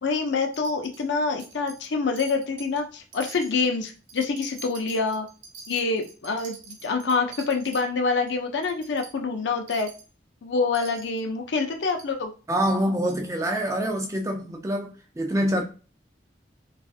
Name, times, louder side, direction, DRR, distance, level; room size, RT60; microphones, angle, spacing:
voice 1, 0.0-5.3 5.7-9.9 10.4-12.3, left 4 dB, 85° left, 0.5 m, -26 dB
Wind chime, 0.5-1.1 1.4-1.9 2.2-2.8 3.1-7.8 8.3-8.4 8.6-9.1 9.7-10.1 10.7-11.2 11.9-12.1 12.7-12.8 13.1-13.2, right 5 dB, 90° right, 0.7 m, -45 dB
voice 2, 12.5-15.6, equal, 15° right, 0.4 m, -26 dB
2.5 x 2.4 x 2.4 m
head